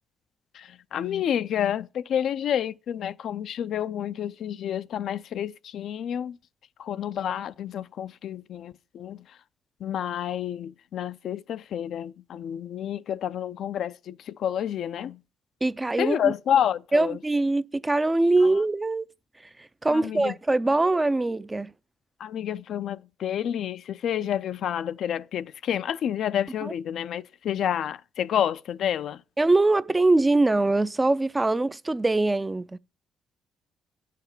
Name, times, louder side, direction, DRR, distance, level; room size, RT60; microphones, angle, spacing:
voice 1, 0.5-6.4 6.8-9.3 9.8-15.2 16.0-17.2 19.9-20.3 22.2-29.2, left 9 dB, 70° left, 0.4 m, -29 dB
voice 2, 15.6-16.3 16.9-19.0 19.6-21.7 26.6-26.7 29.4-32.8, right 2 dB, 15° right, 0.4 m, -23 dB
9.1 x 5.8 x 7.1 m
cardioid pair, 90°, 0 cm